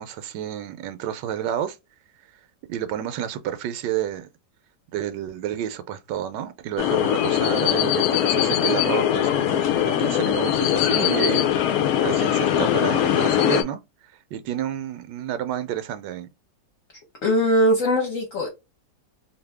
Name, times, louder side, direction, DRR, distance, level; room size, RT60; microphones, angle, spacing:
voice 1, 0.0-1.8 2.7-4.3 4.9-11.5 12.0-13.8 14.3-16.3, right 10 dB, 75° right, 1.2 m, -30 dB
sound 1, 6.8-13.6, left 10 dB, 70° left, 0.8 m, -21 dB
voice 2, 17.2-18.5, equal, 55° left, 1.1 m, -20 dB
2.9 x 2.6 x 3.3 m
omnidirectional pair, 2.0 m